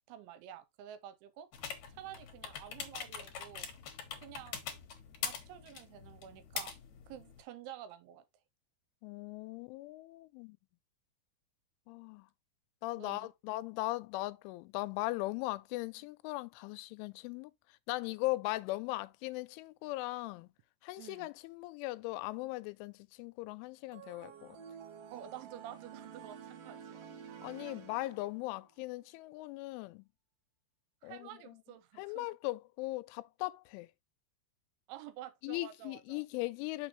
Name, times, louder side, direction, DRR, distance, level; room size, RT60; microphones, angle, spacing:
voice 1, 0.1-1.5 1.9-3.7 4.2-4.6 5.2-6.8 7.1-8.2 13.0-13.3 21.0-21.3 25.1-27.1 27.6-27.8 31.0-32.3 34.9-36.2, right 11 dB, 90° right, 3.1 m, -50 dB
sound 1, 1.5-7.4, left 7 dB, 70° left, 1.8 m, -43 dB
voice 2, 9.0-10.6 11.9-12.3 12.8-20.5 20.8-24.6 27.4-30.1 31.0-31.3 32.0-33.9 35.4-36.9, left 20 dB, 90° left, 3.0 m, -39 dB
sound 2, 23.9-28.6, right 7 dB, 60° right, 2.8 m, -50 dB
6.6 x 6.1 x 3.1 m
omnidirectional pair, 5.5 m